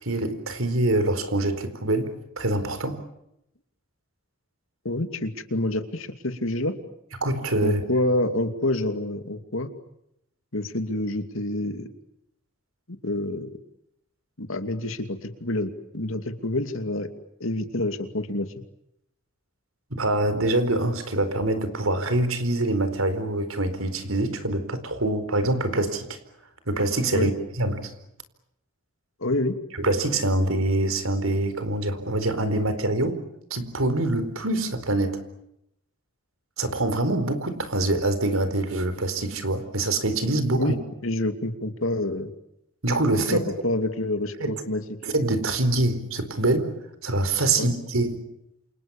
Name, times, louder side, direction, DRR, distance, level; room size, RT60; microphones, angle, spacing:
voice 1, 0.0-3.0 7.2-7.8 19.9-26.2 26.7-27.3 27.6-27.9 29.8-33.2 33.5-35.2 36.6-40.7 42.8-43.4 44.4-44.5 45.0-46.7 47.0-48.2, right 2 dB, 80° right, 11 dB, 4.4 m, -25 dB
voice 2, 4.8-6.7 7.6-9.7 10.5-11.9 12.9-13.5 14.4-17.1 17.4-18.5 27.1-27.3 29.2-29.6 40.6-40.7 41.0-42.3 43.3-45.0 47.6-47.7, left 1 dB, 70° left, 8 dB, 2.7 m, -27 dB
28.5 x 28.5 x 7.3 m, 0.80 s
head